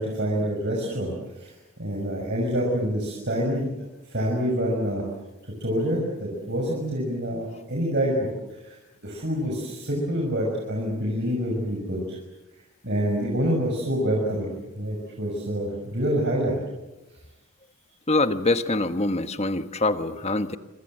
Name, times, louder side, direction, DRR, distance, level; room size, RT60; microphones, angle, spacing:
voice 1, 0.0-1.5 1.8-3.7 4.1-5.0 5.6-8.3 8.6-8.8 9.0-12.2 12.8-16.5, equal, 50° right, -2 dB, 6.1 m, -26 dB
voice 2, 18.1-20.6, left 2 dB, 30° left, 9 dB, 1.2 m, -24 dB
26.5 x 26.5 x 7.9 m, 1.0 s
head